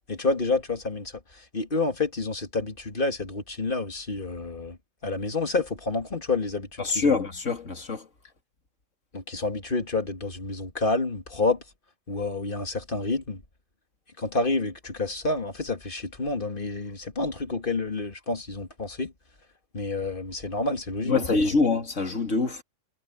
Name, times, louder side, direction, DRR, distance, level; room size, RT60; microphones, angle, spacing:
voice 1, 0.1-4.8 5.0-7.2 9.1-11.6 12.1-13.4 14.2-19.1 19.7-21.1 21.4-21.5, left 3 dB, 45° left, 2.4 m, -29 dB
voice 2, 6.8-8.0 21.1-22.6, left 4 dB, 80° left, 2.9 m, -24 dB
omnidirectional pair, 1.3 m